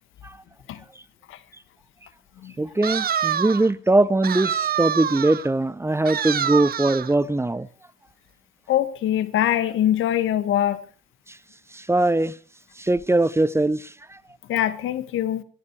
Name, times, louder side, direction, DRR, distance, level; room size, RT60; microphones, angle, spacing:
voice 1, 2.6-7.7 11.7-12.3 12.8-13.9, right 2 dB, 15° right, 0.8 m, -21 dB
sound 1, 2.8-3.7 4.2-5.5 6.1-7.1, right 8 dB, 50° right, 0.9 m, -26 dB
voice 2, 8.7-10.8 14.5-15.4, left 11 dB, 80° left, 1.6 m, -23 dB
24.5 x 11.0 x 4.7 m
cardioid pair, 90°, 20 cm